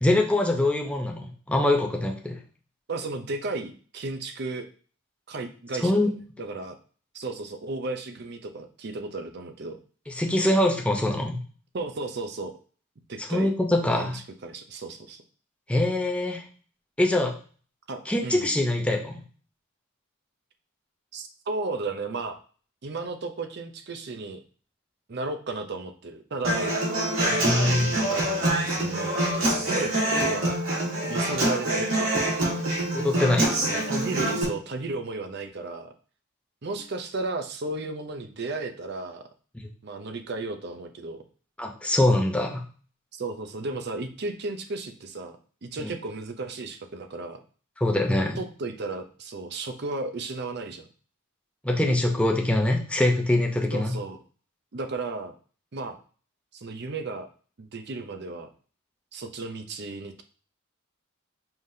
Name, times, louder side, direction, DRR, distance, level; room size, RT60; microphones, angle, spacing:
voice 1, 0.0-2.4 5.8-6.1 10.1-11.4 13.3-14.2 15.7-16.4 17.0-17.3 18.1-19.1 27.3-27.9 32.9-33.6 41.6-42.6 47.8-48.4 51.6-53.9, left 1 dB, 5° left, 1 dB, 0.7 m, -23 dB
voice 2, 2.9-4.7 5.3-6.8 7.1-9.8 11.7-12.5 13.1-13.5 14.0-14.1 14.4-15.2 17.9-18.5 21.1-22.4 22.8-24.4 25.1-26.8 27.9-29.1 29.4-30.6 31.1-32.3 33.6-35.9 36.6-39.2 39.8-41.2 43.1-45.4 45.6-47.4 48.4-50.9 53.7-54.2 54.7-55.3 55.7-56.0 56.5-57.3 57.6-58.5 59.1-60.2, right 3 dB, 50° right, 7 dB, 0.6 m, -34 dB
Human voice / Acoustic guitar, 26.4-34.4, right 1 dB, 75° right, 2.1 m, -25 dB
5.7 x 3.3 x 2.7 m, 0.41 s
head